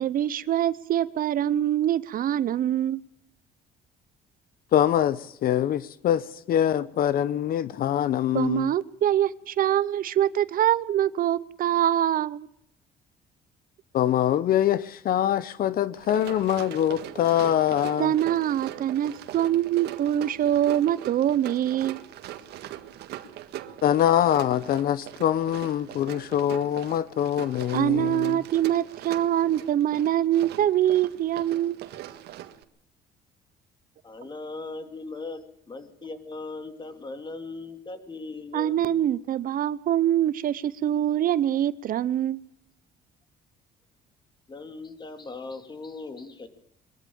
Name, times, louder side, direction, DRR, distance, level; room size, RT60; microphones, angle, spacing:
voice 1, 0.0-3.0 8.3-12.5 18.0-22.0 27.7-31.8 38.5-42.4, right 11 dB, 55° right, 0.8 m, -24 dB
voice 2, 4.7-8.7 13.9-18.1 23.8-28.4, left 11 dB, 60° left, 0.9 m, -24 dB
Run, 15.9-32.6, right 12 dB, 80° right, 1.7 m, -41 dB
voice 3, 34.0-39.1 44.5-46.5, left 3 dB, 25° left, 2.9 m, -39 dB
22.5 x 14.0 x 8.7 m
cardioid pair, 110°, 17 cm